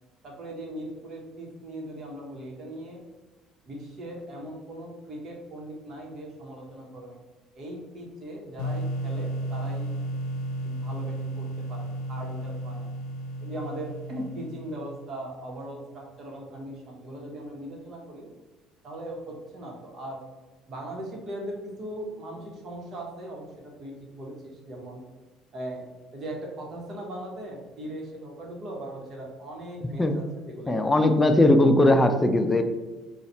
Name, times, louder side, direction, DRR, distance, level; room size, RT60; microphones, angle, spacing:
voice 1, 0.2-3.0 3.6-7.2 7.5-9.9 10.6-12.9 13.4-18.3 18.8-20.2 20.7-25.0 25.5-25.8 26.1-31.4, right 1 dB, 50° right, -1 dB, 1.3 m, -39 dB
sound 1, 8.6-15.4, right 1 dB, 75° left, 0.6 m, -33 dB
voice 2, 30.7-32.6, left 1 dB, 15° left, 7 dB, 0.5 m, -19 dB
4.1 x 2.4 x 4.3 m, 1.2 s
supercardioid pair, 80°, 0 cm